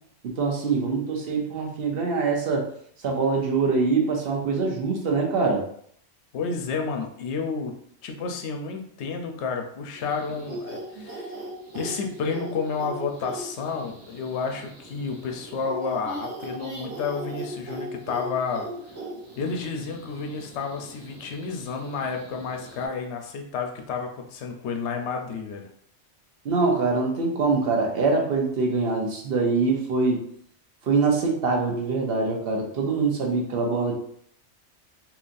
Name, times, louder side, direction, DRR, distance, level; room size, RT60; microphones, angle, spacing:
voice 1, 0.2-2.7 3.0-5.6 26.4-30.2 30.9-33.9, right 4 dB, 55° right, 1 dB, 0.9 m, -24 dB
voice 2, 6.3-7.7 8.0-11.4 11.7-18.7 19.4-25.7, left 5 dB, 70° left, 3 dB, 0.9 m, -31 dB
sound 1, 9.9-22.9, right 1 dB, 90° right, 1.2 m, -39 dB
3.9 x 2.8 x 2.5 m, 0.65 s
omnidirectional pair, 1.2 m